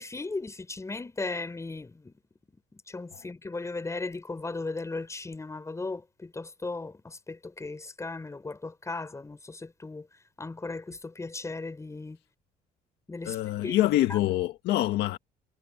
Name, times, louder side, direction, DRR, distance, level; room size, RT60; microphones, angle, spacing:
voice 1, 0.0-2.2 2.7-10.1 10.4-12.2 13.1-13.4 13.6-13.8 14.1-14.2, left 3 dB, 15° left, 5.4 m, -37 dB
voice 2, 13.2-15.2, left 14 dB, 80° left, 1.8 m, -26 dB
cardioid pair, 110°, 17 cm